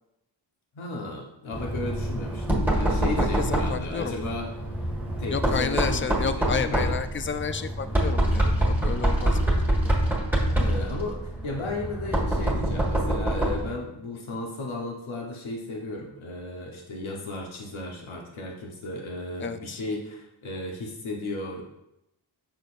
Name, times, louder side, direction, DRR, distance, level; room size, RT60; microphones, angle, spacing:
voice 1, 0.7-4.5 5.1-6.9 9.3-9.6 10.6-21.6, left 2 dB, 90° left, 0 dB, 1.1 m, -35 dB
Knock, 1.5-13.7, right 1 dB, 5° right, 1.7 m, -26 dB
voice 2, 3.2-4.3 5.3-9.5 19.4-19.8, left 6 dB, 30° left, 10 dB, 0.4 m, -31 dB
6.3 x 6.3 x 2.5 m, 0.85 s
wide cardioid pair, 85°, 47 cm